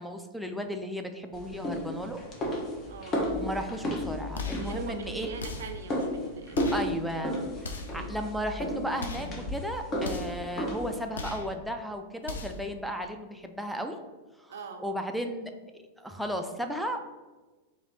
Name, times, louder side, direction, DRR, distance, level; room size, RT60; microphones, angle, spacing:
voice 1, 0.0-2.2 3.3-5.3 6.7-7.3 7.6-14.0 14.4-15.5 16.0-17.1, equal, ahead, 4 dB, 0.3 m, -35 dB
sound 1, 1.3-11.1, left 1 dB, 30° left, 0.8 m, -33 dB
voice 2, 2.8-3.3 4.6-6.9 14.5-14.8, right 5 dB, 65° right, 6 dB, 0.5 m, -42 dB
sound 2, 4.3-4.7 5.4-5.8 6.5-6.9 7.6-8.0 9.0-9.4 10.0-10.4 11.1-11.5 12.2-12.7, left 3 dB, 70° left, 0.4 m, -38 dB
3.1 x 2.7 x 3.9 m, 1.2 s
figure-of-eight pair, 95°, 0 cm